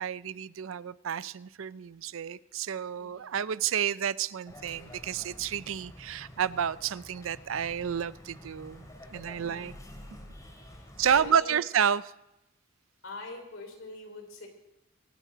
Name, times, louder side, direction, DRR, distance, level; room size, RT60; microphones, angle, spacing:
voice 1, 0.0-9.7 11.0-12.1, right 8 dB, 85° right, 18 dB, 0.5 m, -30 dB
sound 1, 4.5-11.3, equal, 15° left, 2.5 m, -49 dB
voice 2, 9.3-9.7 10.8-11.6 13.0-14.5, left 2 dB, 75° left, 3 dB, 3.3 m, -43 dB
24.5 x 9.2 x 5.1 m, 0.90 s
head